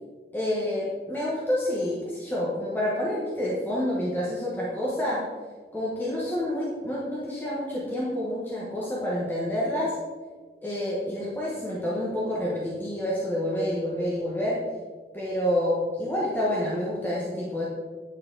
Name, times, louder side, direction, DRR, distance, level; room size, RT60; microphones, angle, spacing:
voice 1, 0.3-5.2 5.7-9.9 10.6-14.6 15.1-17.6, left 1 dB, 10° left, -7 dB, 1.1 m, -28 dB
9.4 x 4.2 x 3.8 m, 1.5 s
head